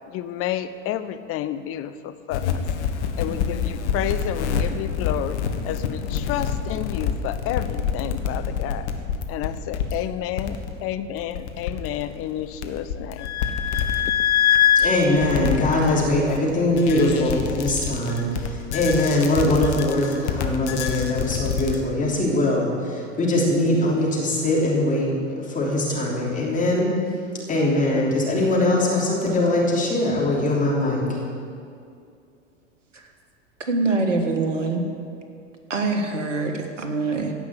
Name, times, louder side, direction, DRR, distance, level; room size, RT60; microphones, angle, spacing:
voice 1, 0.1-2.6 3.2-5.4 5.6-8.9 9.3-13.3, left 11 dB, 35° left, 11 dB, 0.8 m, -30 dB
sound 1, 2.3-21.8, left 8 dB, 65° left, 1.4 m, -25 dB
voice 2, 14.8-18.3 18.7-25.1 25.5-26.9 27.5-31.0, left 1 dB, 20° left, -3 dB, 3.2 m, -21 dB
voice 3, 33.7-34.8 35.7-37.3, right 3 dB, 80° right, 4 dB, 1.7 m, -24 dB
16.0 x 5.9 x 9.0 m, 2.4 s
figure-of-eight pair, 90°, 37 cm